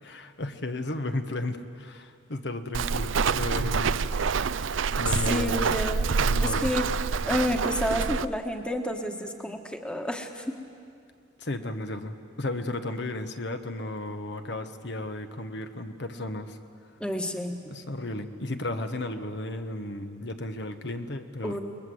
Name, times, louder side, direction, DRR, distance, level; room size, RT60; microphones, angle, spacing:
voice 1, 0.0-4.1 5.0-5.7 6.2-6.7 11.4-16.6 17.7-21.6, left 2 dB, 60° left, 7 dB, 1.2 m, -34 dB
Walk footsteps, 2.7-8.2, right 5 dB, 90° right, 0.6 m, -27 dB
voice 2, 5.2-6.1 6.4-6.9 7.3-10.4 17.0-17.7 21.4-21.6, equal, 5° left, 4 dB, 1.4 m, -29 dB
29.0 x 21.5 x 7.9 m, 2.4 s
head